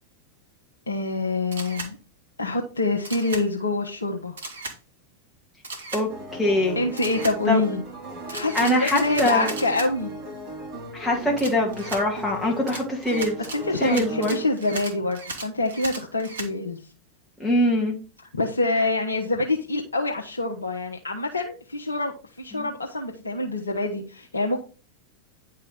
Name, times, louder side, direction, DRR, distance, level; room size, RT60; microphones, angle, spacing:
voice 1, 0.9-2.0 2.4-4.4 6.7-7.8 8.3-10.1 13.4-16.8 18.3-24.6, left 2 dB, 75° left, 1 dB, 1.2 m, -26 dB
Camera, 1.5-1.9 3.0-3.4 4.4-4.8 5.6-6.0 7.0-7.4 8.3-9.9 11.4-12.0 12.7-16.5, right 3 dB, 65° right, 2.3 m, -36 dB
sound 1, 6.1-14.5, equal, 35° right, 4.1 m, -38 dB
voice 2, 6.4-6.8 7.5-7.6 8.5-9.5 10.9-13.4 13.8-14.4 17.4-18.0, left 1 dB, 5° left, -3 dB, 2.0 m, -23 dB
10.5 x 4.6 x 4.9 m, 0.34 s
figure-of-eight pair, 90°, 0 cm